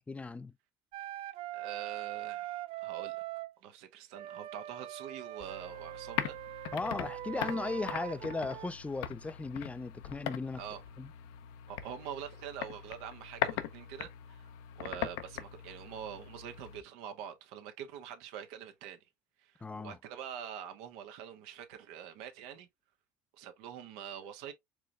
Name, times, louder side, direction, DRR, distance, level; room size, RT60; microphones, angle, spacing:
voice 1, 0.1-0.5 6.7-10.6 11.0-11.1 19.6-20.0, left 3 dB, 10° left, 0.4 m, -37 dB
Wind instrument woodwind instrument, 0.9-3.5 4.1-8.7, right 15 dB, 55° right, 0.4 m, -42 dB
voice 2, 1.5-3.2 3.6-6.7 7.4-7.5 10.6-10.8 11.7-19.1 19.4-22.7 23.3-24.5, right 9 dB, 75° right, 1.0 m, -45 dB
sound 1, 5.4-16.8, left 11 dB, 80° left, 0.6 m, -41 dB
4.7 x 3.1 x 2.3 m
supercardioid pair, 90°, 11 cm